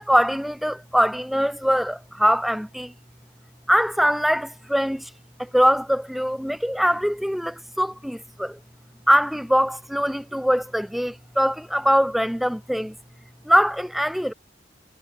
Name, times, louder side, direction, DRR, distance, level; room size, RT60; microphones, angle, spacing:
voice 1, 0.0-2.9 3.7-5.1 5.4-8.6 9.1-13.0 13.5-14.3, equal, ahead, 3.6 m, -22 dB
head